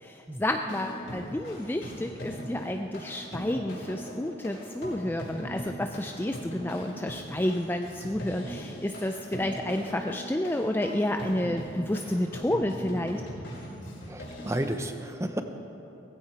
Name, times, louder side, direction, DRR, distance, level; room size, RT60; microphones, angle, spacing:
voice 1, 0.0-13.2, left 1 dB, 10° left, 5 dB, 0.4 m, -30 dB
sound 1, 0.6-14.7, equal, 70° left, 4.3 m, -40 dB
voice 2, 14.1-15.4, right 1 dB, 15° right, 7 dB, 0.7 m, -32 dB
19.0 x 15.5 x 4.5 m, 2.8 s
head